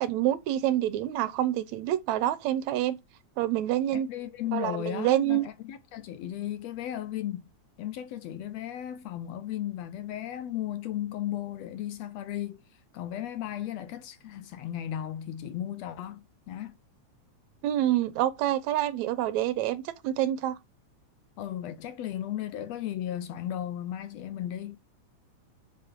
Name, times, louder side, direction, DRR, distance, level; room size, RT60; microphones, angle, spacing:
voice 1, 0.0-3.0 3.4-4.1 4.5-5.4 17.6-20.6, right 13 dB, 80° right, 1.9 m, -27 dB
voice 2, 3.9-7.5 7.8-12.6 12.9-16.8 21.4-24.8, left 11 dB, 75° left, 1.7 m, -35 dB
7.4 x 5.7 x 3.6 m
omnidirectional pair, 3.4 m